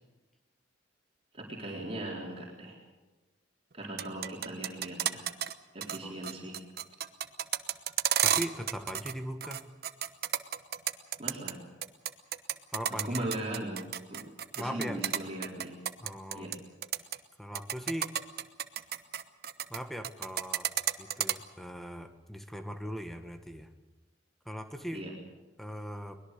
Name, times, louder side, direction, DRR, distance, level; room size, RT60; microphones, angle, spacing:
voice 1, 1.3-2.8 3.7-5.3 5.7-6.6 11.2-11.6 13.0-14.3 14.6-15.8 16.3-16.5 24.9-25.1, right 1 dB, 30° right, -3 dB, 4.1 m, -38 dB
sound 1, 3.8-5.5 5.8-6.0 6.2-9.1 9.4-11.5 11.8-16.6 16.8-17.2 17.6-19.8 20.0-21.3, right 10 dB, 55° right, 1.0 m, -31 dB
voice 2, 8.2-9.6 12.7-13.4 14.5-15.0 16.0-16.5 17.4-18.1 19.7-20.7 21.0-23.7 24.4-25.0 25.6-26.2, equal, ahead, 7 dB, 1.5 m, -39 dB
23.0 x 20.5 x 6.8 m, 1.2 s
head